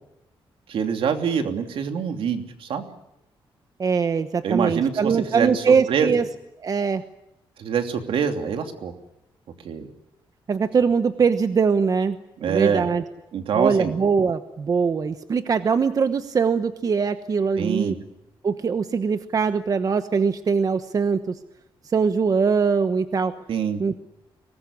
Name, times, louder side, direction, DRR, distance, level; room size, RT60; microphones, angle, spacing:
voice 1, 0.7-2.8 4.4-6.1 7.6-8.9 9.6-9.9 12.4-12.8 13.3-13.9 17.6-17.9 23.5-23.8, right 7 dB, 70° right, 6 dB, 2.9 m, -25 dB
voice 2, 3.8-6.3 6.6-7.0 10.5-12.2 12.5-13.0 13.5-17.9 18.4-21.3 21.9-23.3 23.8-24.0, right 5 dB, 40° right, 10 dB, 1.1 m, -22 dB
24.5 x 20.0 x 9.8 m, 0.87 s
cardioid pair, 125°, 9 cm